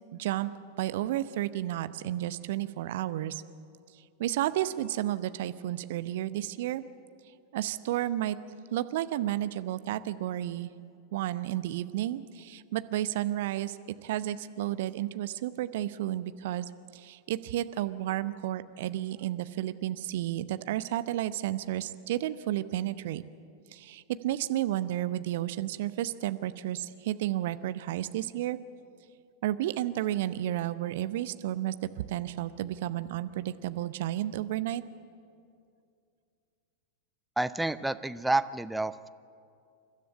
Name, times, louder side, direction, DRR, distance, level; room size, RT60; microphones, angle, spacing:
voice 1, 0.1-0.5 0.8-3.4 4.2-6.8 7.5-8.4 8.7-10.7 11.1-13.8 14.0-23.2 23.7-28.6 29.4-31.8 32.1-34.8, right 13 dB, 55° right, 14 dB, 0.7 m, -32 dB
voice 2, 37.4-39.1, right 2 dB, 5° right, 13 dB, 0.6 m, -29 dB
28.5 x 13.0 x 8.4 m, 2.4 s
figure-of-eight pair, 90°, 0 cm